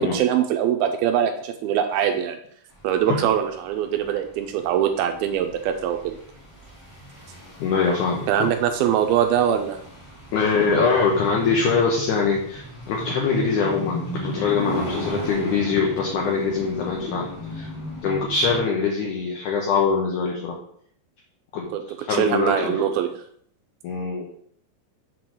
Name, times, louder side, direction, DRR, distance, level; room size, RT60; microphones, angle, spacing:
voice 1, 0.0-2.4 2.8-6.2 8.3-9.8 21.7-21.8 22.1-23.1, right 9 dB, 80° right, 6 dB, 2.3 m, -22 dB
sound 1, 2.8-18.6, equal, 20° left, 0.8 m, -35 dB
voice 2, 7.6-8.5 10.3-17.3 17.5-17.7 18.0-20.6 21.5-21.7 22.0-22.8 23.8-24.3, left 5 dB, 70° left, -2 dB, 1.9 m, -23 dB
6.5 x 3.9 x 6.0 m, 0.64 s
omnidirectional pair, 4.7 m